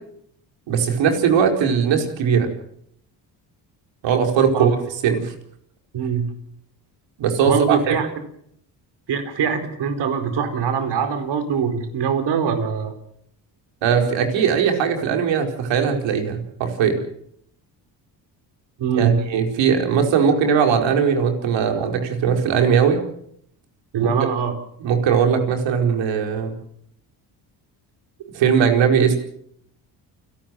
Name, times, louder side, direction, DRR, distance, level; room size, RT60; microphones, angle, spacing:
voice 1, 0.7-2.5 4.0-4.8 5.0-5.3 7.2-8.0 13.8-17.0 18.9-23.0 24.0-24.1 24.8-26.6 28.3-29.2, right 7 dB, 80° right, 4 dB, 4.7 m, -19 dB
voice 2, 5.9-6.3 7.4-8.1 9.1-12.9 18.8-19.2 23.9-24.5, right 7 dB, 65° right, 8 dB, 4.5 m, -22 dB
29.5 x 12.5 x 7.7 m, 0.69 s
cardioid pair, 95°, 44 cm